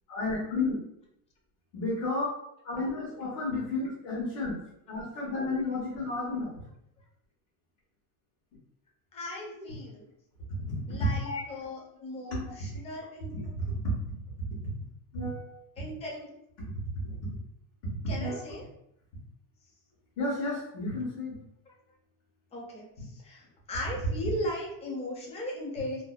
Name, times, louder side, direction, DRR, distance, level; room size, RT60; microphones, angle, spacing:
voice 1, 0.1-0.8 1.7-2.3 2.6-4.5 4.9-6.6 10.7-10.8 11.2-11.4 12.3-12.7 13.3-13.9 15.1-15.6 17.0-17.1 18.1-18.4 20.2-21.3, left 2 dB, 80° left, -7 dB, 1.1 m, -32 dB
voice 2, 9.1-10.0 10.9-13.3 15.8-16.3 18.1-18.6 21.7-21.8 22.5-26.0, left 1 dB, 15° left, -2 dB, 0.4 m, -37 dB
2.6 x 2.1 x 2.3 m, 0.77 s
cardioid pair, 145°, 42 cm